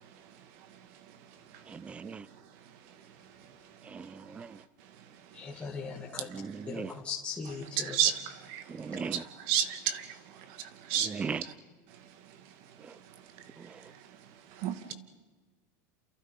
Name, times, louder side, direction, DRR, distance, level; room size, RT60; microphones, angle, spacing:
voice 1, 1.7-2.2 3.9-4.6 6.3-6.9 8.7-9.2 11.0-11.4, right 5 dB, 15° right, 0.7 m, -38 dB
voice 2, 5.3-6.3 6.7-8.0, left 5 dB, 10° left, 2.1 m, -39 dB
voice 3, 7.8-8.1 9.5-10.0 10.9-11.1 14.6-14.9, right 10 dB, 50° right, 2.5 m, -28 dB
29.0 x 29.0 x 5.5 m
supercardioid pair, 155°, 9 cm